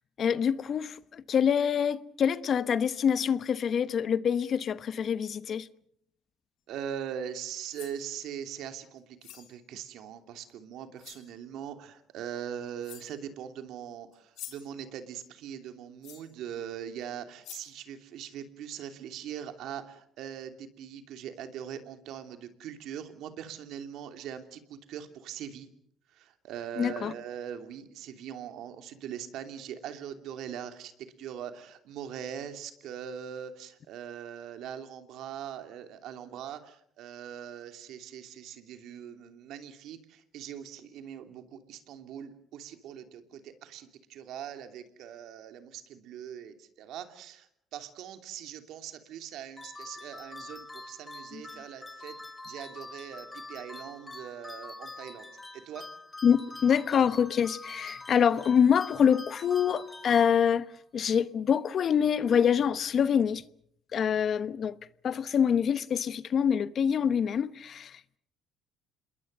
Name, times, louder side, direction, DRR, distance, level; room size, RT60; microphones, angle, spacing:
voice 1, 0.2-5.7 26.8-27.1 51.3-51.4 56.2-63.4 63.9-64.8 65.0-68.2, left 7 dB, 50° left, 1.1 m, -26 dB
voice 2, 6.7-25.7 26.1-30.9 31.2-52.2 52.5-55.3 55.5-55.9, right 9 dB, 70° right, 2.9 m, -41 dB
sound 1, 7.5-8.0 9.2-9.6 10.5-10.6 11.0-11.3 12.4-12.5 12.8-13.2 14.1-14.8 16.0-16.4 17.0-17.1 17.4-17.8, left 12 dB, 75° left, 4.0 m, -47 dB
sound 2, 49.6-60.8, left 2 dB, 15° left, 2.8 m, -45 dB
27.5 x 21.5 x 6.7 m
cardioid pair, 95°, 0 cm